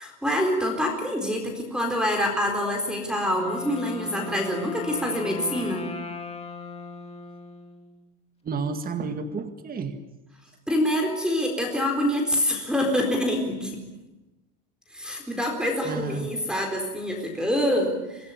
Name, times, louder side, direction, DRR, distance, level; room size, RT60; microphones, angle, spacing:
voice 1, 0.0-5.9 10.7-13.8 14.9-18.3, left 1 dB, ahead, 2 dB, 4.2 m, -26 dB
Wind instrument woodwind instrument, 3.2-8.1, left 3 dB, 15° left, 2.6 m, -38 dB
voice 2, 8.4-10.0 15.8-16.3, right 4 dB, 20° right, 7 dB, 1.9 m, -31 dB
25.5 x 17.5 x 9.8 m, 1.0 s
cardioid pair, 155°, 44 cm